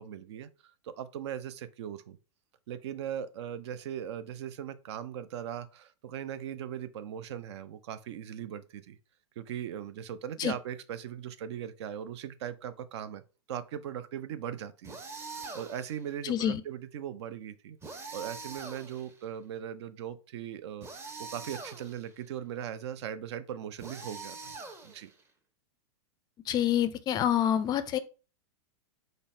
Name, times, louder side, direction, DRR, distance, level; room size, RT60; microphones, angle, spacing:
voice 1, 0.0-2.2 2.7-9.0 9.4-13.2 13.5-15.0 15.3-24.5 24.8-25.1, right 9 dB, 65° right, 0.5 m, -39 dB
sound 1, 14.8-16.0 17.8-19.2 20.8-22.1 23.8-25.2, right 4 dB, 15° right, 0.6 m, -43 dB
voice 2, 16.2-16.6 26.5-28.0, left 10 dB, 25° left, 0.4 m, -27 dB
3.9 x 2.1 x 4.1 m
hypercardioid pair, 115°, 15 cm